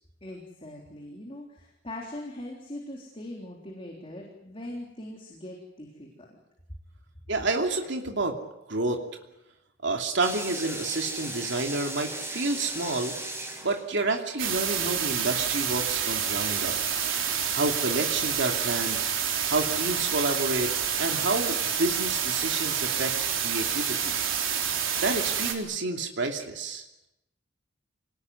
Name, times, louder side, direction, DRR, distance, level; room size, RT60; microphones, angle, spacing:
voice 1, 0.2-6.3, left 1 dB, 25° left, -1 dB, 3.7 m, -41 dB
voice 2, 7.3-8.4 8.7-9.0 9.8-13.1 13.6-16.8 17.5-19.0 19.5-20.7 21.0-23.1 23.4-24.2 25.0-26.8, right 3 dB, 60° right, 3 dB, 2.8 m, -29 dB
sound 1, 10.2-14.1, right 2 dB, 15° right, 6.2 m, -36 dB
sound 2, 14.4-25.5, right 8 dB, 80° right, 3.9 m, -28 dB
27.5 x 19.5 x 9.6 m, 0.91 s
head